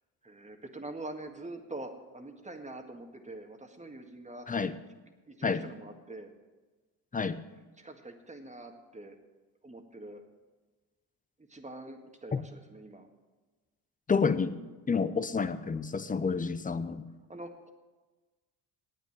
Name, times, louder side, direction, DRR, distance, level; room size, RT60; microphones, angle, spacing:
voice 1, 0.2-4.5 5.3-6.3 7.8-9.2 9.6-10.2 11.4-13.1 14.4-14.7 17.3-17.7, right 2 dB, 15° right, 5 dB, 1.7 m, -45 dB
voice 2, 14.1-14.5 14.9-17.0, left 5 dB, 20° left, 12 dB, 0.7 m, -29 dB
9.0 x 8.9 x 9.2 m, 1.3 s
supercardioid pair, 75°, 46 cm